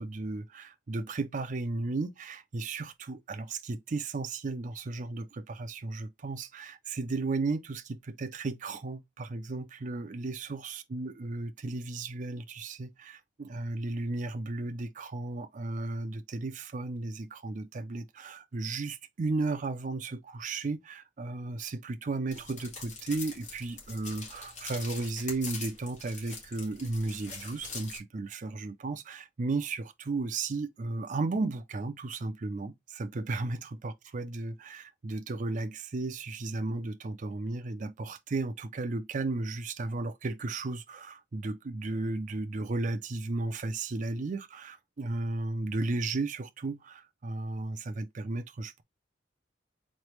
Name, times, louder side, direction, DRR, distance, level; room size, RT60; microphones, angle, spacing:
voice 1, 0.0-48.8, right 3 dB, 45° right, 0.5 m, -34 dB
sound 1, 22.3-28.0, left 4 dB, 40° left, 1.9 m, -43 dB
3.9 x 3.2 x 3.1 m
head